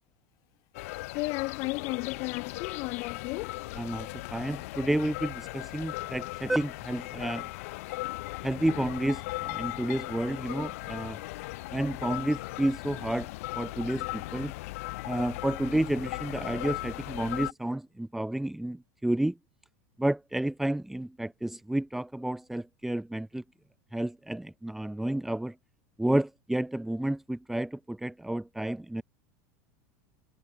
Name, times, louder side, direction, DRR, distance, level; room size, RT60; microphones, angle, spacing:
sound 1, 0.7-17.5, left 21 dB, 70° left, 2.6 m, -38 dB
voice 1, 1.1-3.7, left 24 dB, 50° left, 1.1 m, -34 dB
voice 2, 3.7-7.5 8.4-11.2 11.7-13.3 13.6-14.5 15.0-19.4 20.0-23.4 23.9-25.5 26.0-29.0, right 1 dB, 5° right, 2.4 m, -31 dB
supercardioid pair, 145°, 8 cm